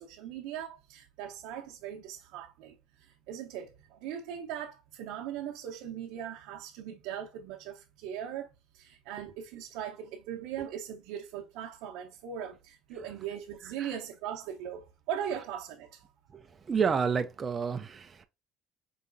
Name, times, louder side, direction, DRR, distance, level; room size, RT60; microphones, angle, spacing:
voice 1, 0.0-16.1, right 9 dB, 80° right, 0.6 m, -40 dB
voice 2, 16.3-18.2, right 6 dB, 20° right, 0.4 m, -30 dB
4.7 x 3.0 x 2.5 m
cardioid pair, 170°, 0 cm